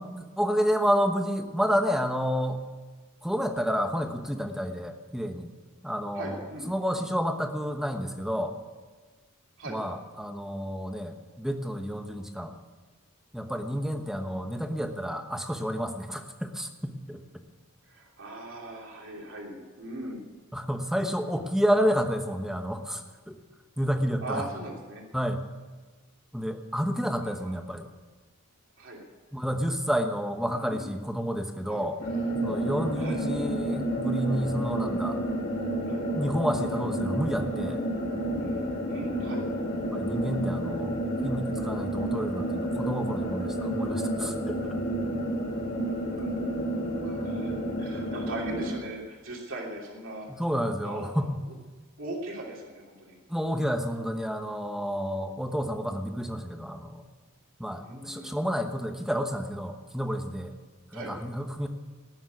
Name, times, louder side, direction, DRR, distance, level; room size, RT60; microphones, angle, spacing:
voice 1, 0.0-2.6 3.2-5.5 5.8-8.5 9.7-12.6 13.3-17.2 20.5-23.3 23.8-24.4 25.1-25.4 26.3-27.9 29.3-32.0 32.4-35.2 36.1-37.8 39.9-40.9 41.2-44.8 50.3-51.4 53.3-57.0 57.6-60.5 60.9-61.7, equal, ahead, 5 dB, 1.0 m, -30 dB
voice 2, 6.1-6.7 9.6-9.8 17.8-20.2 24.2-25.0 27.2-27.5 28.8-29.0 30.5-30.9 31.7-31.8 33.0-33.2 35.9-36.1 38.4-39.4 45.8-47.5 47.8-50.3 50.8-51.1 52.0-53.2 57.8-58.4 60.9-61.2, right 1 dB, 60° right, -1 dB, 3.0 m, -40 dB
sound 1, 32.0-48.7, right 1 dB, 50° left, 3.1 m, -30 dB
19.0 x 7.4 x 9.5 m, 1.4 s
head